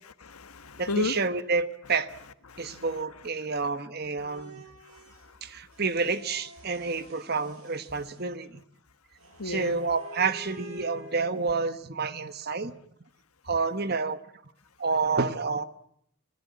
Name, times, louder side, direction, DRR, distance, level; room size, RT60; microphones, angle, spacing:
voice 1, 0.2-1.1 2.5-2.8 4.9-5.4 9.4-9.8, left 3 dB, 85° left, 11 dB, 1.5 m, -34 dB
voice 2, 0.8-2.1 2.6-4.6 5.4-8.6 9.4-12.7 13.5-14.2 14.8-15.6, right 4 dB, 45° right, 12 dB, 1.1 m, -29 dB
sound 1, 4.1-5.3 5.7-8.2 9.2-11.8, equal, 85° right, 5.8 m, -49 dB
26.5 x 18.0 x 8.4 m, 0.71 s
head